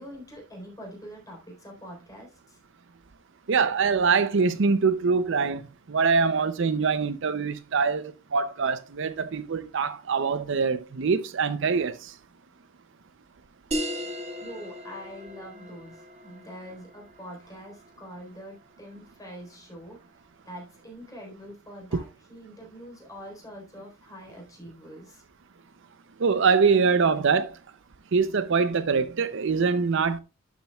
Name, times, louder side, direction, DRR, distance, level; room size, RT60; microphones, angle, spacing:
voice 1, 0.0-2.6 14.4-20.0 20.5-25.2, equal, 20° left, 3.8 m, -44 dB
voice 2, 3.5-5.6 5.9-12.1 21.9-22.0 26.2-27.5 28.1-30.2, right 5 dB, 65° right, 0.6 m, -24 dB
sound 1, 13.7-18.8, equal, 30° right, 1.7 m, -37 dB
11.5 x 7.2 x 2.3 m
head